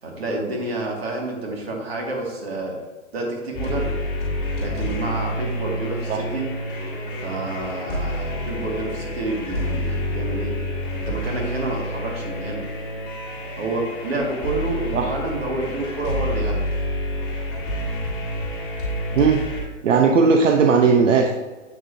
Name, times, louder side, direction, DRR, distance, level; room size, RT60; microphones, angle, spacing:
voice 1, 0.0-2.7 3.1-4.0 4.6-6.5 7.2-10.5 11.1-12.6 13.6-16.7, right 2 dB, 50° right, -1 dB, 2.2 m, -29 dB
sound 1, 3.5-19.6, left 1 dB, 15° left, 1.7 m, -28 dB
voice 2, 19.8-21.3, right 5 dB, 75° right, 3 dB, 0.9 m, -17 dB
7.8 x 7.5 x 2.7 m, 1.3 s
hypercardioid pair, 180°, 38 cm